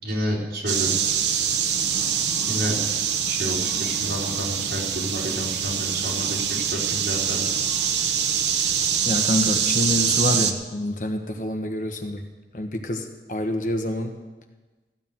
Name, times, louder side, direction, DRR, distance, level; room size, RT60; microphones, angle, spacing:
voice 1, 0.0-1.1 2.5-2.8 3.2-7.5, equal, 70° right, -4 dB, 3.8 m, -30 dB
sound 1, 0.7-10.5, right 7 dB, 85° right, 0.9 m, -24 dB
voice 2, 9.0-14.2, left 1 dB, 50° left, 5 dB, 1.3 m, -27 dB
14.5 x 6.7 x 9.2 m, 1.2 s
head